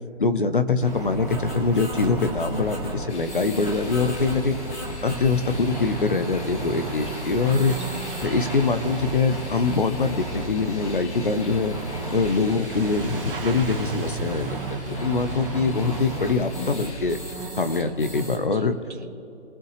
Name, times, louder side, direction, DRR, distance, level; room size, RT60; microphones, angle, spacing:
voice 1, 0.2-4.6 5.0-7.8 8.2-11.8 12.1-14.6 15.0-17.2 17.6-18.8, left 4 dB, 45° left, 10 dB, 0.8 m, -23 dB
sound 1, 0.8-18.4, right 2 dB, 15° left, 1.4 m, -34 dB
Truck / Accelerating revving vroom, 2.9-3.0 3.1-16.6, right 3 dB, 50° right, 1.8 m, -39 dB
sound 2, 3.1-17.4, left 3 dB, 70° left, 1.7 m, -39 dB
voice 2, 7.6-8.2 14.5-15.3 17.8-18.0 18.5-19.1, right 4 dB, 70° right, 3 dB, 1.9 m, -44 dB
22.5 x 7.5 x 3.2 m, 2.8 s
hypercardioid pair, 175°, 36 cm